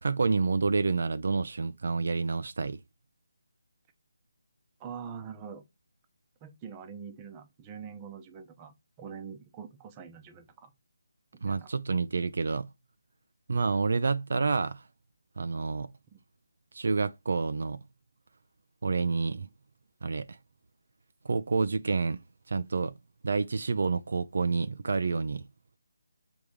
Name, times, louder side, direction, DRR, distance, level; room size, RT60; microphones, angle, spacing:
voice 1, 0.0-2.8 11.4-12.7 13.5-14.9 15.4-15.9 16.7-17.8 18.8-19.5 20.0-20.4 21.2-22.2 22.5-22.9 23.2-25.5, right 4 dB, 60° right, 0.5 m, -28 dB
voice 2, 4.8-5.6 6.4-10.7 11.3-11.7 16.1-16.2, right 6 dB, 15° right, 0.9 m, -44 dB
7.1 x 3.5 x 4.8 m
figure-of-eight pair, 165°, 0 cm